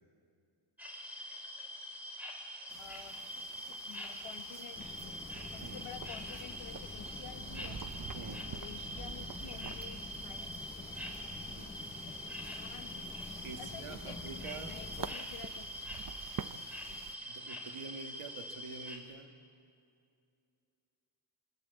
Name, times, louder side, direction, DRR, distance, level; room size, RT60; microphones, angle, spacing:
sound 1, 0.8-19.0, equal, 5° right, 5.4 m, -44 dB
sound 2, 2.7-17.2, right 7 dB, 40° right, 0.8 m, -49 dB
voice 1, 2.8-7.8 8.5-10.5 12.0-12.2 12.6-13.1 13.6-14.2 14.6-15.7 16.9-17.0, left 9 dB, 80° left, 7 dB, 1.6 m, -51 dB
sound 3, 4.7-15.2, left 3 dB, 15° left, 1.0 m, -48 dB
voice 2, 8.1-8.6 11.4-11.7 13.4-14.8 17.2-19.3, right 4 dB, 85° right, 5 dB, 2.2 m, -47 dB
27.0 x 26.0 x 8.5 m, 2.5 s
wide cardioid pair, 110°, 50 cm